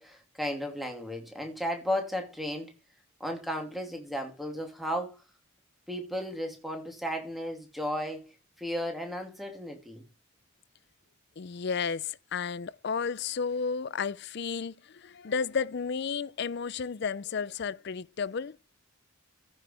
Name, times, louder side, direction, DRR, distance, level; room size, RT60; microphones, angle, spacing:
voice 1, 0.0-2.7 3.2-5.2 5.9-8.3 8.6-10.0, equal, ahead, 2.7 m, -34 dB
voice 2, 11.4-18.6, left 5 dB, 50° left, 0.4 m, -32 dB
14.5 x 6.4 x 3.4 m
head